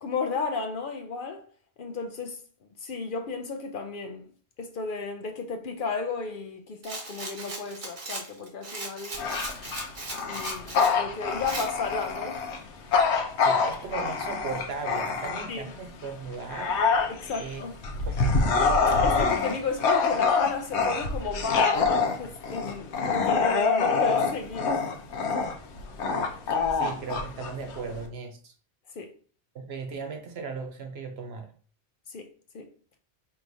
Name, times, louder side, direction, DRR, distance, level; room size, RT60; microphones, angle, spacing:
voice 1, 0.0-1.5 1.8-2.4 2.8-4.3 4.6-9.2 10.2-12.4 15.5-15.7 17.1-17.8 19.0-21.8 22.2-24.8 29.0-29.1 32.1-32.3 32.5-32.7, left 4 dB, 60° left, 0.7 m, -33 dB
Rattle, 6.8-11.0 11.5-11.7, right 2 dB, 50° right, 1.1 m, -37 dB
Bark / Growling, 9.1-15.7 16.2-28.1, left 4 dB, 85° left, 1.0 m, -26 dB
voice 2, 13.4-16.8 17.4-18.8 26.5-28.5 29.5-31.5, right 4 dB, 70° right, 1.0 m, -37 dB
4.6 x 3.0 x 2.7 m
omnidirectional pair, 1.1 m